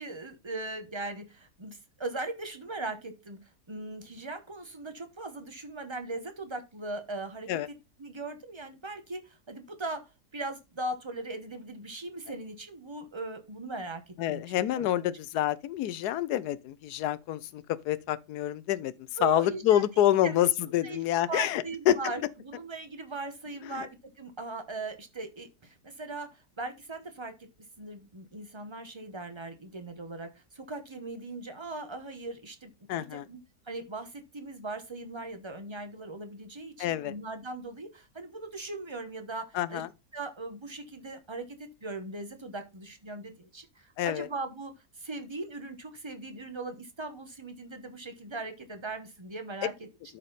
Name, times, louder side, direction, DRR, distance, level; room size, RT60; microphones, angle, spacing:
voice 1, 0.0-3.4 3.7-7.6 8.0-10.0 10.3-14.4 14.7-14.9 19.2-19.9 20.2-20.4 20.8-27.5 27.8-32.7 33.1-33.4 33.7-39.8 40.1-41.5 41.8-49.9, right 2 dB, 20° right, 0.9 m, -39 dB
voice 2, 14.2-18.9 19.2-22.1 23.7-23.9 32.9-33.3 36.8-37.1 39.5-39.9 44.0-44.3, left 12 dB, 80° left, 1.2 m, -27 dB
12.0 x 4.2 x 4.0 m
omnidirectional pair, 1.7 m